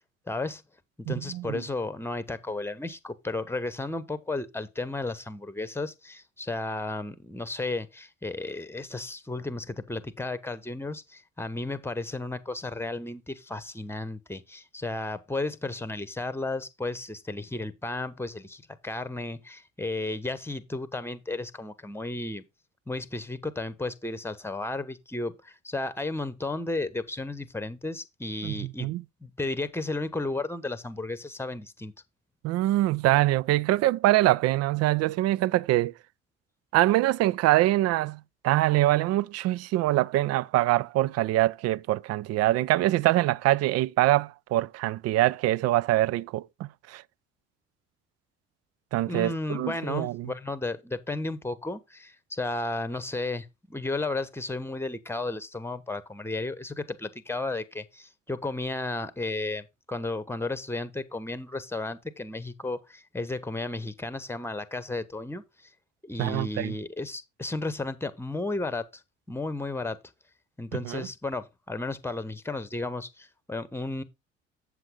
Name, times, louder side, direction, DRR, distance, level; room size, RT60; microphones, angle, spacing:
voice 1, 0.3-0.6 1.0-22.4 22.9-28.9 29.2-31.9 49.0-65.4 66.0-69.0 69.3-70.0 70.6-74.0, left 2 dB, 5° left, 1.1 m, -33 dB
voice 2, 1.1-1.6 28.4-29.0 32.4-35.9 36.7-47.0 48.9-50.3 66.2-66.7 70.7-71.1, right 16 dB, 45° right, 0.4 m, -24 dB
7.8 x 7.8 x 3.7 m
hypercardioid pair, 55°, 35 cm